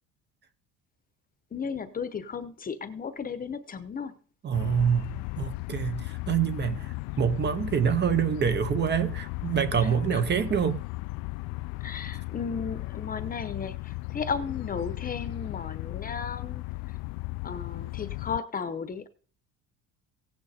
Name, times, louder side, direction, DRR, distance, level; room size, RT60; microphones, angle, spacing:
voice 1, 1.5-4.1 9.8-10.2 11.8-16.9 17.4-19.1, left 6 dB, 25° left, 0.9 m, -35 dB
voice 2, 4.4-10.8, right 8 dB, 30° right, 0.8 m, -26 dB
sound 1, 4.5-18.4, left 22 dB, 80° left, 0.5 m, -36 dB
16.5 x 9.3 x 4.3 m
cardioid pair, 165°, 35 cm